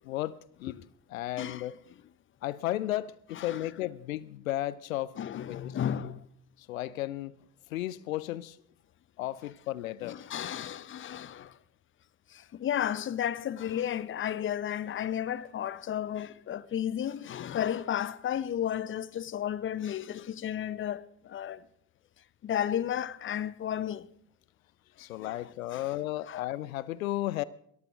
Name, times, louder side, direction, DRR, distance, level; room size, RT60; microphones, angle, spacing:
voice 1, 0.0-0.8 1.1-1.8 2.4-5.1 5.5-5.7 6.6-7.3 7.7-8.6 9.2-10.2 25.0-27.4, left 15 dB, 70° left, 0.6 m, -34 dB
voice 2, 1.4-1.7 3.4-3.7 5.2-6.3 10.0-11.6 12.3-21.6 22.4-24.1 25.2-25.8 26.3-26.5, left 10 dB, 30° left, 0.7 m, -33 dB
21.5 x 14.5 x 3.6 m
figure-of-eight pair, 60°, 43 cm